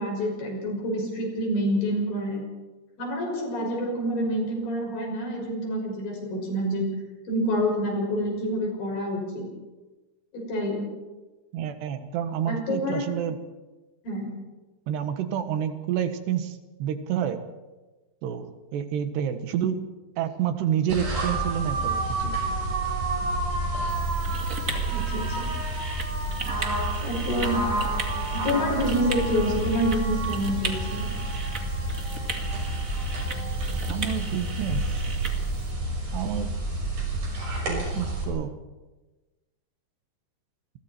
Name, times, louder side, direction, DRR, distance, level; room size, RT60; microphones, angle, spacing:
voice 1, 0.0-2.4 3.0-6.9 7.3-9.5 10.3-10.9 12.5-13.1 14.0-14.3 24.9-25.5 27.0-27.6 28.3-31.1, equal, 60° left, 0 dB, 7.8 m, -27 dB
voice 2, 11.5-13.4 14.9-17.4 18.2-19.8 20.2-22.4 33.9-34.9 36.1-36.5 37.7-38.6, right 9 dB, 85° right, 9 dB, 3.5 m, -29 dB
sound 1, 20.9-38.2, right 2 dB, 50° right, 7.2 m, -29 dB
sound 2, 23.9-35.7, right 3 dB, 30° right, 1.5 m, -37 dB
29.0 x 22.0 x 4.4 m, 1.2 s
omnidirectional pair, 4.7 m